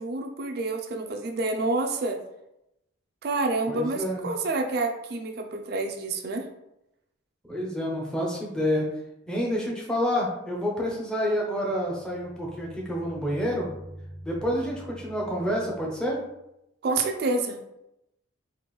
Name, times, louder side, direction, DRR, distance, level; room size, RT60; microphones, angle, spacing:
voice 1, 0.0-2.2 3.2-6.5 16.8-17.6, right 3 dB, 50° right, 5 dB, 0.3 m, -28 dB
voice 2, 3.7-4.3 7.5-8.9 9.3-13.7 14.2-16.2, equal, 5° left, -3 dB, 0.7 m, -28 dB
sound 1, 11.6-16.3, right 1 dB, 90° left, 1.2 m, -46 dB
4.3 x 2.5 x 3.1 m, 0.87 s
head